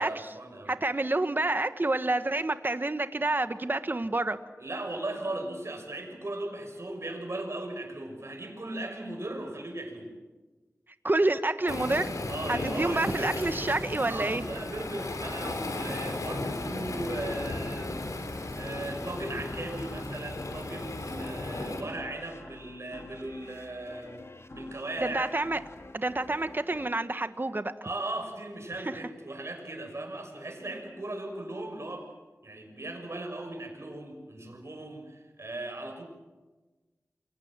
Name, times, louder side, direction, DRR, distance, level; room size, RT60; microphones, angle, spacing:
voice 1, 0.0-0.7 4.6-10.1 12.3-13.6 14.0-18.3 18.6-25.3 27.8-32.1 32.4-36.0, right 2 dB, 55° right, 4 dB, 6.1 m, -37 dB
voice 2, 0.7-4.4 11.0-12.0 12.5-14.5 25.0-25.6 25.9-27.7 28.7-29.0, right 2 dB, 40° right, 10 dB, 1.4 m, -28 dB
Waves surf, 11.7-21.8, left 2 dB, 90° left, 3.8 m, -35 dB
sound 1, 16.9-28.1, left 2 dB, 55° left, 2.0 m, -49 dB
29.0 x 23.0 x 7.5 m, 1.3 s
wide cardioid pair, 60°, 6 cm